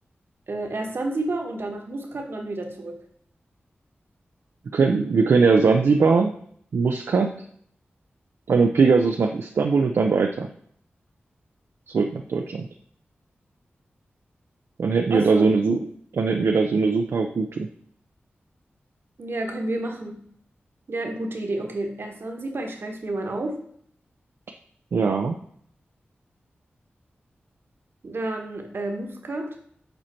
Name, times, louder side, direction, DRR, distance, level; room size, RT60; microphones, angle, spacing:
voice 1, 0.5-3.0 15.1-15.5 19.2-20.2 20.9-23.6 28.0-29.5, right 2 dB, 65° right, 3 dB, 1.4 m, -30 dB
voice 2, 4.7-6.3 6.7-7.3 8.5-10.5 11.9-12.7 14.8-15.8 16.1-17.7 24.9-25.4, right 4 dB, 80° right, 3 dB, 0.5 m, -20 dB
7.9 x 4.3 x 4.4 m, 0.63 s
cardioid pair, 60°, 4 cm